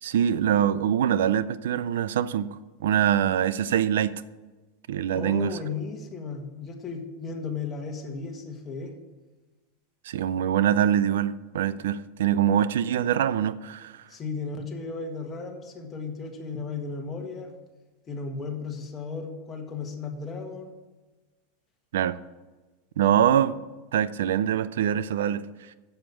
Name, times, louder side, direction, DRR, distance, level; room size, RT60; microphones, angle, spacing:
voice 1, 0.0-4.1 4.9-5.6 10.0-14.0 21.9-22.2 23.0-23.6 23.9-25.7, right 10 dB, 85° right, 0.5 m, -24 dB
voice 2, 5.1-8.9 14.1-17.5 18.1-20.7, left 4 dB, 20° left, 1.7 m, -35 dB
7.8 x 7.3 x 8.5 m
supercardioid pair, 140°, 0 cm